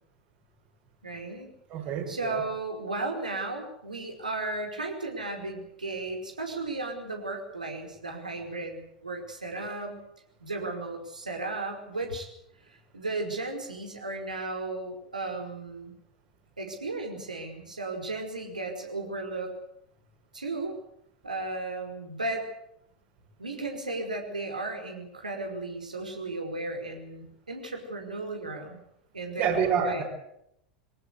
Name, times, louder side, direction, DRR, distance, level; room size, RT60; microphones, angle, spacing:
voice 1, 1.0-1.5 2.1-10.0 10.4-12.3 12.9-15.9 16.6-19.5 20.3-20.8 21.2-22.5 23.4-28.8 29.1-30.0, right 2 dB, 80° right, 3 dB, 5.1 m, -35 dB
voice 2, 1.7-2.4 29.4-30.0, right 6 dB, 45° right, 3 dB, 6.4 m, -27 dB
23.5 x 19.0 x 8.3 m, 0.75 s
figure-of-eight pair, 80°, 4 cm